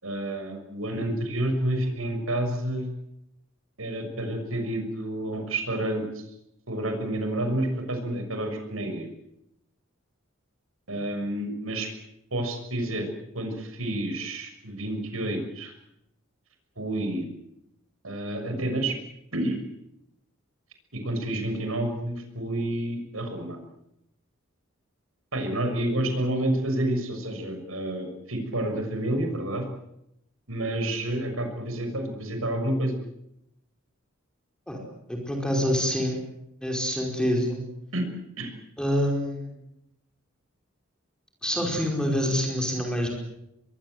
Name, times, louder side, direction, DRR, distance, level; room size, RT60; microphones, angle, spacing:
voice 1, 0.0-2.9 3.8-6.2 6.7-9.1 10.9-11.9 12.3-13.1 13.3-15.7 16.8-17.3 18.0-18.9 19.3-19.6 20.9-23.6 25.3-29.7 30.5-33.0 37.9-38.0 38.4-38.5, right 1 dB, 85° right, 5 dB, 6.5 m, -29 dB
voice 2, 35.1-36.2 36.6-37.6 38.8-39.5 41.4-43.1, equal, 5° left, 1 dB, 5.0 m, -26 dB
25.0 x 22.5 x 8.0 m, 0.82 s
head